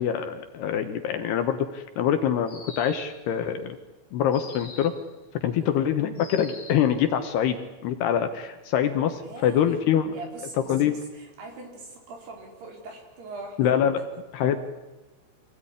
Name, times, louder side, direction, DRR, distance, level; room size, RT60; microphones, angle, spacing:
voice 1, 0.0-3.8 4.1-4.9 5.4-10.2 10.7-10.9 13.6-14.0 14.3-14.6, left 9 dB, 70° left, 8 dB, 2.7 m, -25 dB
sound 1, 2.5-3.3 4.3-5.1 6.2-6.9, left 3 dB, 20° left, 2.2 m, -44 dB
voice 2, 9.2-9.8 10.1-13.7, right 2 dB, 55° right, 2 dB, 6.2 m, -42 dB
26.0 x 18.0 x 9.9 m, 1.1 s
omnidirectional pair, 5.8 m